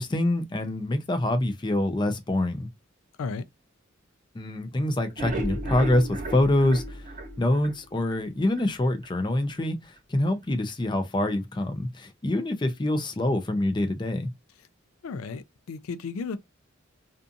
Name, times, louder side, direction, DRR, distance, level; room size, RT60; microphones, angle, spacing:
voice 1, 0.0-2.7 4.3-7.1 7.4-14.3, left 1 dB, 20° left, 0.4 m, -25 dB
sound 1, 5.0-8.2 8.6-8.7 9.0-9.1 9.5-9.6, right 1 dB, 40° right, 0.8 m, -34 dB
voice 2, 15.0-16.4, left 4 dB, 90° left, 0.4 m, -34 dB
2.6 x 2.4 x 2.5 m
head